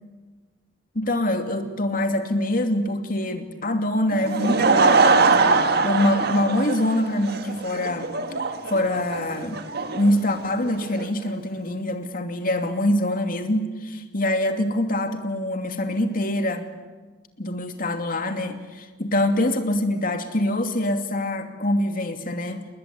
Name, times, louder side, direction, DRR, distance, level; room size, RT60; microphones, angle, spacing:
voice 1, 0.9-8.1 8.7-9.6 9.9-16.7 17.4-22.7, left 1 dB, 50° left, 6 dB, 2.6 m, -24 dB
Laughter / Crowd, 4.1-11.1, right 4 dB, 60° right, 1.7 m, -22 dB
30.0 x 20.5 x 8.5 m, 1.3 s
head